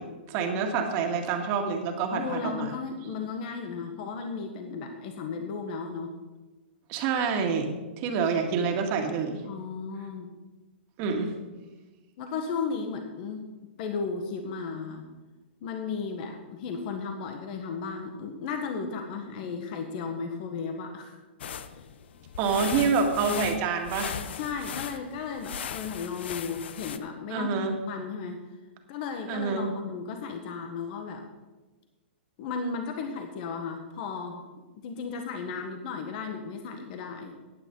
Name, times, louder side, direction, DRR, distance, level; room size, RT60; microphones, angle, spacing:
voice 1, 0.0-2.7 6.9-7.7 8.0-9.4 11.0-11.3 22.4-24.2 27.3-27.8 29.3-29.7, right 5 dB, 40° right, 3 dB, 2.0 m, -27 dB
voice 2, 2.1-6.1 9.4-10.3 12.2-13.5 13.8-15.0 15.6-21.2 24.3-28.4 28.9-31.2 32.4-34.4 34.8-37.3, left 5 dB, 50° left, 5 dB, 1.5 m, -35 dB
sound 1, 21.4-27.0, left 8 dB, 70° left, 0.8 m, -38 dB
15.5 x 9.7 x 3.9 m, 1.2 s
hypercardioid pair, 140°, 6 cm